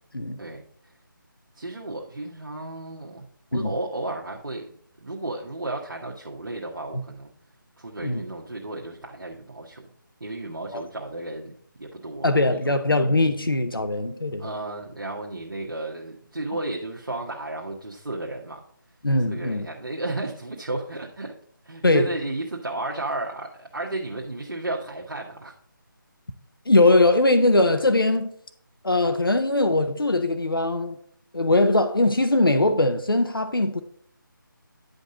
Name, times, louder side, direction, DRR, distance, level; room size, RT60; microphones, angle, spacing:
voice 1, 1.5-7.3 7.8-9.9 10.2-12.3 12.6-12.8 14.4-18.6 19.3-21.3 21.6-25.5, right 2 dB, 70° right, 1.2 m, -33 dB
voice 2, 12.2-14.5 19.0-19.7 21.8-22.1 26.7-28.3 28.8-31.0 31.3-33.8, left 2 dB, 85° left, 0.7 m, -21 dB
9.7 x 5.2 x 3.8 m
figure-of-eight pair, 155°, 12 cm